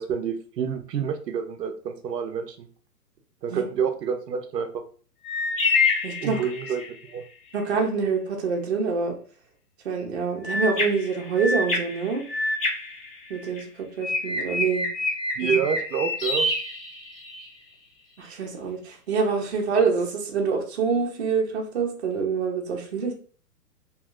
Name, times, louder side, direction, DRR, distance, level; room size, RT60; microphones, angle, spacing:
voice 1, 0.0-2.7 3.4-4.8 6.2-7.2 15.4-16.5, right 7 dB, 85° right, 6 dB, 0.7 m, -28 dB
sound 1, 5.2-7.0 10.4-13.6 14.0-17.5, left 3 dB, 35° left, 0.7 m, -27 dB
voice 2, 6.0-6.4 7.5-9.1 9.8-12.2 13.3-13.7 14.0-14.9 18.2-23.1, right 5 dB, 45° right, 1 dB, 0.7 m, -26 dB
2.9 x 2.8 x 2.4 m, 0.41 s
hypercardioid pair, 170°, 48 cm